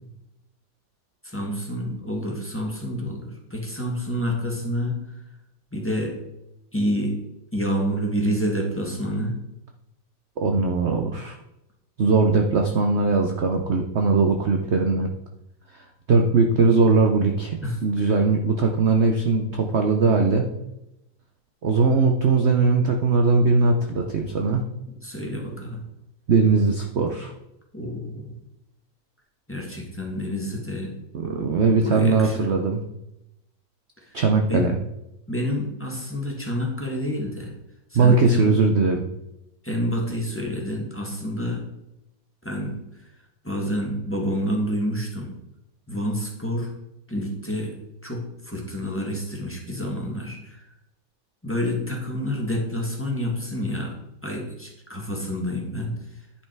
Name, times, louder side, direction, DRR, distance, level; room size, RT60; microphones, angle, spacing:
voice 1, 1.2-5.0 5.7-6.1 6.7-7.2 7.5-9.3 17.6-18.1 25.0-25.8 27.7-28.3 29.5-30.9 31.8-32.5 34.4-34.7 35.3-37.5 37.9-38.5 39.6-41.6 42.4-42.7 43.4-45.3 45.9-46.7 47.1-47.7 48.0-50.6 51.4-53.9 54.2-55.9, equal, 5° left, 0 dB, 1.7 m, -28 dB
voice 2, 10.4-11.4 12.0-15.1 15.7-20.5 21.6-24.6 26.3-27.3 31.1-32.8 34.1-34.7 37.9-39.0, right 4 dB, 60° right, 4 dB, 0.7 m, -20 dB
10.5 x 5.6 x 4.6 m, 0.87 s
omnidirectional pair, 2.1 m